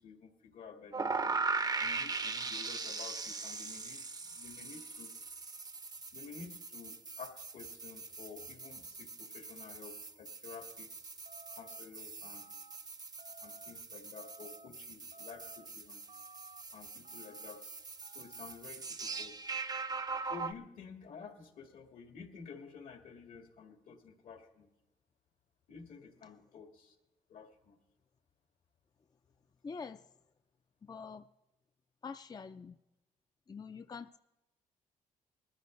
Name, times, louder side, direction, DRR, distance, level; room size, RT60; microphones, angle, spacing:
voice 1, 0.0-1.4 1.8-5.1 6.1-11.1 11.5-12.5 13.4-16.0 16.7-17.7 18.1-19.5 20.2-24.7 25.7-27.0 27.3-27.8, left 6 dB, 75° left, 5 dB, 1.9 m, -51 dB
sound 1, 0.9-20.5, right 4 dB, 25° right, 0.6 m, -40 dB
sound 2, 11.3-11.8 12.2-12.8 13.2-13.7 14.1-14.7 15.1-15.7 16.1-16.6 17.0-17.6 18.0-18.6, right 3 dB, 55° right, 0.9 m, -57 dB
voice 2, 29.6-30.0 30.8-31.3 32.0-32.8 33.5-34.2, left 5 dB, 30° left, 10 dB, 0.4 m, -45 dB
20.0 x 13.5 x 3.2 m, 1.0 s
cardioid pair, 75°, 14 cm